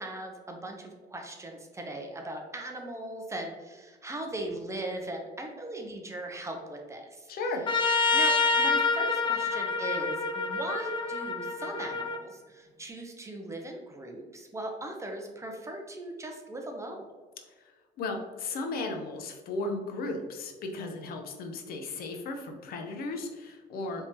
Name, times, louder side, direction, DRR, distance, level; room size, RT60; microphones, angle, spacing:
voice 1, 0.0-7.3 8.1-17.1, right 1 dB, 15° right, 2 dB, 0.7 m, -39 dB
voice 2, 7.3-7.6 18.0-24.1, left 2 dB, 65° left, 4 dB, 0.7 m, -35 dB
Trumpet, 7.7-12.2, left 4 dB, 30° left, 0.4 m, -27 dB
4.5 x 3.5 x 2.8 m, 1.3 s
cardioid pair, 110°, 17 cm